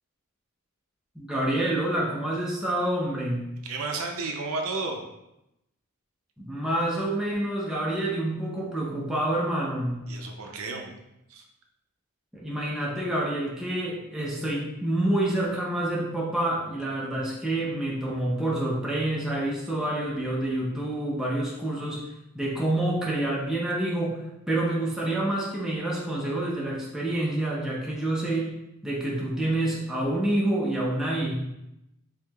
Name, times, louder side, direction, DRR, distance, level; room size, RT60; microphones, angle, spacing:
voice 1, 1.2-3.5 6.4-10.0 12.3-22.0 22.3-28.6 28.8-31.3, right 1 dB, ahead, -5 dB, 0.5 m, -28 dB
voice 2, 3.6-5.0 10.1-10.9 11.3-11.5, right 3 dB, 75° right, 2 dB, 0.5 m, -32 dB
4.6 x 2.8 x 2.3 m, 0.86 s
head